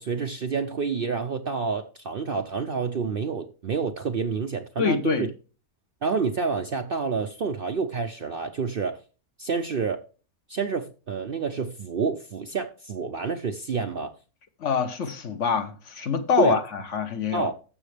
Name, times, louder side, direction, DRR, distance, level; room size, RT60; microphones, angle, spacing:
voice 1, 0.0-5.3 6.0-9.0 9.4-10.0 10.5-14.1 16.4-16.6 17.3-17.5, right 5 dB, 55° right, 0.7 m, -28 dB
voice 2, 4.8-5.3 14.6-17.5, left 6 dB, 55° left, 1.2 m, -25 dB
14.5 x 6.2 x 3.3 m
omnidirectional pair, 1.6 m